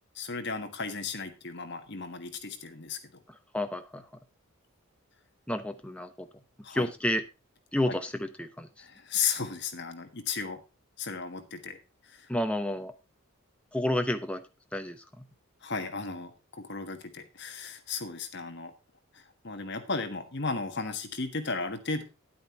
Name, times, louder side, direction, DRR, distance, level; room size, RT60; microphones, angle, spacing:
voice 1, 0.1-3.0 6.6-6.9 7.9-8.0 8.8-10.6 11.0-11.8 12.1-12.3 15.6-18.7 19.1-22.0, left 5 dB, 50° left, 7 dB, 1.5 m, -35 dB
voice 2, 3.5-4.0 5.5-6.3 6.7-7.2 7.7-8.7 12.3-12.9 13.7-14.4 14.7-15.2, left 1 dB, 5° left, 7 dB, 0.8 m, -30 dB
10.5 x 8.8 x 4.2 m, 0.27 s
head